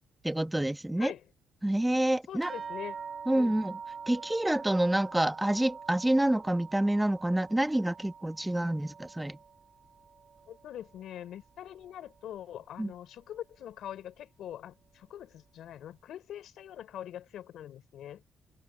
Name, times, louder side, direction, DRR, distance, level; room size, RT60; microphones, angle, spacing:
voice 1, 0.2-1.1 1.6-2.5 3.3-3.8 4.1-9.4 12.8-12.9, right 1 dB, 10° right, 1.3 m, -27 dB
voice 2, 2.3-3.0 3.3-3.6 10.5-18.2, left 11 dB, 75° left, 4.4 m, -43 dB
sound 1, 2.4-11.2 11.6-12.4 13.2-13.3 13.7-13.9, right 6 dB, 50° right, 2.2 m, -45 dB
cardioid pair, 90°, 0 cm